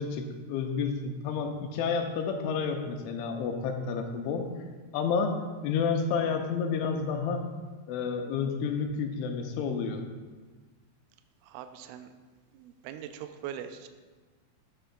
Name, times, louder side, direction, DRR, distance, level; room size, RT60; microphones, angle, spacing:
voice 1, 0.0-4.5 4.9-5.4 5.6-7.4 7.9-10.0, left 5 dB, 85° left, 4 dB, 3.1 m, -30 dB
voice 2, 11.5-12.1 12.5-13.9, right 9 dB, 85° right, 8 dB, 2.8 m, -41 dB
13.0 x 10.0 x 2.4 m, 1.3 s
omnidirectional pair, 5.6 m